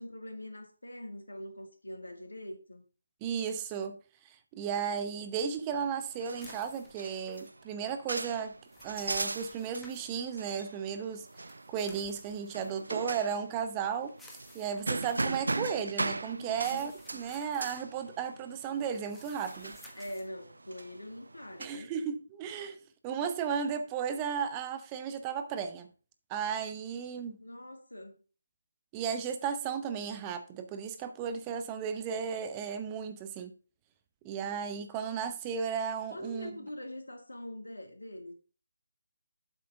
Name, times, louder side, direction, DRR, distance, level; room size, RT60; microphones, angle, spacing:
voice 1, 0.0-2.8 16.3-16.8 19.9-21.9 27.4-28.2 36.1-38.3, left 1 dB, 85° left, 2.1 m, -43 dB
voice 2, 3.2-4.0 4.2-8.5 8.8-11.3 11.7-14.1 14.5-19.7 21.6-22.8 23.0-25.9 26.3-27.4 28.9-33.5 34.2-36.5, right 7 dB, 20° right, 0.7 m, -34 dB
sound 1, 5.7-21.7, right 2 dB, 75° right, 0.6 m, -39 dB
sound 2, 6.4-7.5 8.5-10.0 11.2-12.8 14.1-15.4 16.4-17.8 18.8-20.3, left 1 dB, 5° left, 1.3 m, -55 dB
7.8 x 4.7 x 5.6 m
figure-of-eight pair, 155°, 0 cm